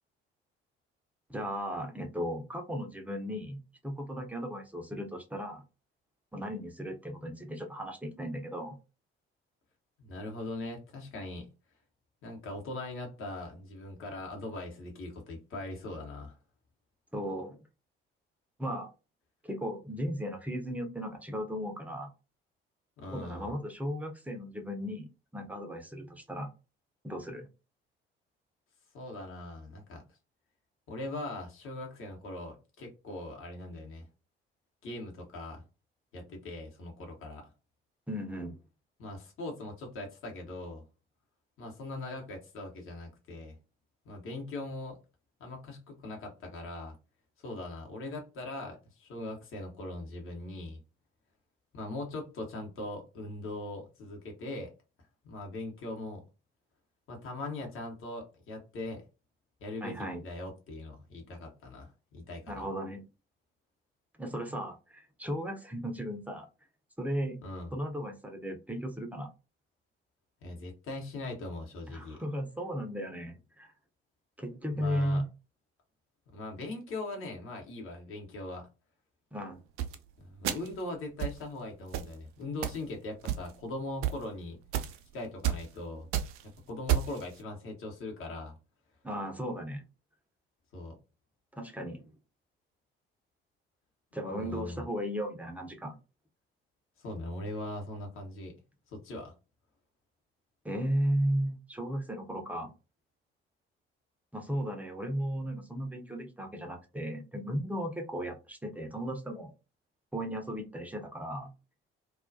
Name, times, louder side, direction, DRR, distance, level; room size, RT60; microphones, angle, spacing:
voice 1, 1.3-5.6 6.3-8.8 17.1-17.6 18.6-18.9 19.4-22.1 23.1-26.5 27.0-27.5 38.1-38.5 59.8-60.2 62.5-63.0 64.2-66.5 67.0-67.4 67.7-69.3 71.9-73.7 74.4-75.3 79.3-79.6 89.0-89.8 91.6-92.1 94.1-96.0 100.6-102.7 104.3-109.5 110.1-111.5, equal, 5° right, 0.6 m, -35 dB
voice 2, 10.0-11.5 12.2-16.4 23.0-23.5 28.9-30.0 30.9-34.1 34.8-35.6 36.1-37.5 39.0-40.8 41.6-43.6 44.0-45.0 45.4-47.0 47.4-50.8 51.7-54.7 55.2-56.2 57.1-59.0 59.6-62.7 67.4-67.8 70.4-72.2 74.7-75.2 76.3-78.7 80.2-84.6 85.1-86.1 86.7-88.6 90.7-90.9 94.4-94.9 97.0-98.5 98.9-99.3, left 2 dB, 45° left, 1.0 m, -40 dB
sound 1, 79.8-79.9 80.4-80.8 81.2-81.4 81.9-82.1 82.6-82.8 83.2-83.6 84.0-84.1 84.7-85.0 85.4-85.6 86.0-86.4 86.9-87.2, right 10 dB, 50° right, 0.4 m, -30 dB
2.3 x 2.2 x 2.5 m
figure-of-eight pair, 50°, 29 cm